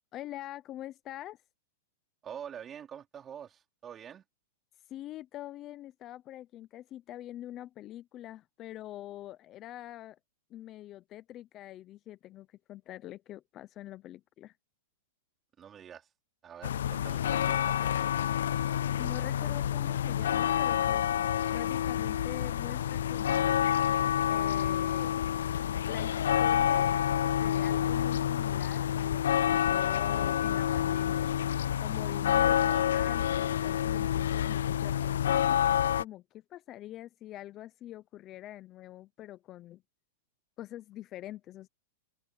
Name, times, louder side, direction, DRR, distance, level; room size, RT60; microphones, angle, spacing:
voice 1, 0.1-1.4 4.9-10.2 10.5-14.5 19.0-21.1 21.5-23.7 24.3-25.1 25.9-26.9 27.2-31.3 31.8-35.5 36.0-39.8 40.6-41.7, left 13 dB, 30° left, 0.7 m, -45 dB
voice 2, 2.2-4.2 15.6-16.1 16.4-18.0 32.6-32.9, right 8 dB, 20° right, 4.0 m, -46 dB
sound 1, 16.6-36.0, left 10 dB, 80° left, 0.3 m, -28 dB
open air
hypercardioid pair, 145°, 0 cm